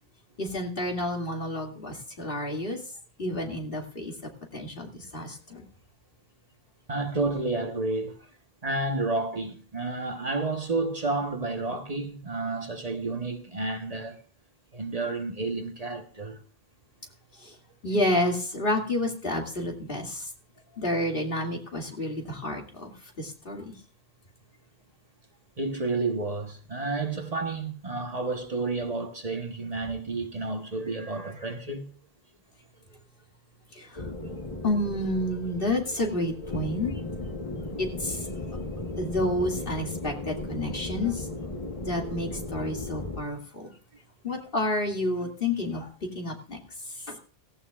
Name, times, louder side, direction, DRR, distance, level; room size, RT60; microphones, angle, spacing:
voice 1, 0.4-2.8 3.2-5.6 17.4-17.5 17.8-20.3 20.8-23.7 33.7-34.1 34.6-36.9 37.8-38.6 39.0-41.3 41.8-43.7 44.2-45.9 46.1-46.6 47.1-47.2, left 1 dB, 65° left, 2.6 m, -30 dB
voice 2, 6.9-8.1 8.6-14.2 14.7-16.4 25.6-31.9, right 3 dB, 40° right, 1.2 m, -30 dB
sound 1, 34.0-43.2, left 2 dB, 35° left, 1.2 m, -36 dB
17.0 x 15.5 x 2.4 m
omnidirectional pair, 1.0 m